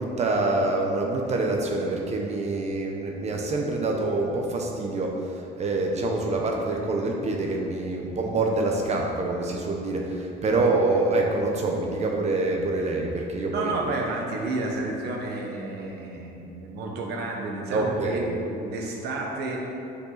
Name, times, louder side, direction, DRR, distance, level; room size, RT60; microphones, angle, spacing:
voice 1, 0.0-5.2 5.6-13.7 17.7-18.2, right 2 dB, 40° right, 1 dB, 0.8 m, -26 dB
voice 2, 13.5-19.8, right 2 dB, 75° right, 0 dB, 1.2 m, -31 dB
6.5 x 5.2 x 4.0 m, 2.7 s
cardioid pair, 110°, 17 cm